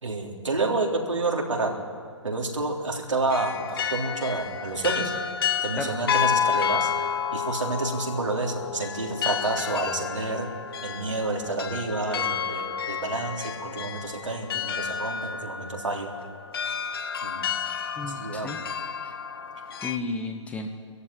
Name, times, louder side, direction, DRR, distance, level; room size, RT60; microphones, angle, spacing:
voice 1, 0.0-1.8 2.2-5.1 5.6-6.9 7.3-10.5 10.8-16.1 17.2-17.5 18.1-18.5, right 3 dB, 75° right, 0 dB, 3.7 m, -29 dB
sound 1, 3.2-20.0, left 7 dB, 50° left, 1.2 m, -30 dB
voice 2, 18.0-18.6 19.0-19.1 19.8-20.7, left 3 dB, 10° left, 4 dB, 1.2 m, -33 dB
23.0 x 15.0 x 9.9 m, 2.3 s
figure-of-eight pair, 130°, 16 cm